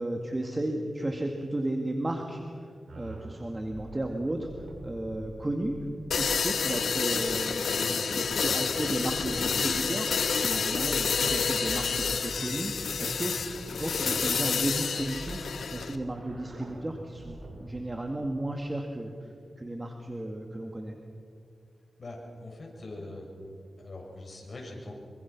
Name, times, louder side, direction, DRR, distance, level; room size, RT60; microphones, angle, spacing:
voice 1, 0.0-4.5 4.8-5.9 6.2-21.0, right 1 dB, 25° right, 3 dB, 2.2 m, -34 dB
sound 1, 2.9-17.7, right 2 dB, 70° right, 5.3 m, -45 dB
sound 2, 6.1-16.0, left 5 dB, 85° left, 1.2 m, -29 dB
voice 2, 22.0-23.3 23.8-24.9, left 2 dB, 50° left, -1 dB, 7.1 m, -42 dB
26.0 x 24.0 x 6.1 m, 2.4 s
cardioid pair, 65°, 0 cm